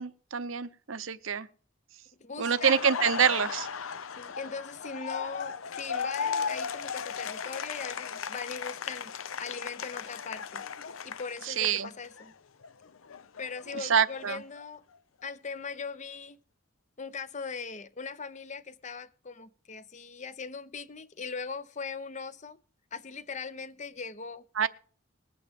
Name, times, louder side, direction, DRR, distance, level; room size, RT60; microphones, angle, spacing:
voice 1, 0.0-1.5 2.4-3.7 11.5-11.9 13.7-14.4 24.6-24.7, right 7 dB, 80° right, 0.7 m, -26 dB
voice 2, 2.2-2.9 4.2-10.6 11.0-12.3 13.4-14.8 15.2-16.4 17.0-22.6 22.9-24.5, left 5 dB, 35° left, 0.7 m, -40 dB
Laughter, 2.5-12.3 12.6-14.6, left 6 dB, 85° left, 0.6 m, -36 dB
20.5 x 8.5 x 3.5 m
head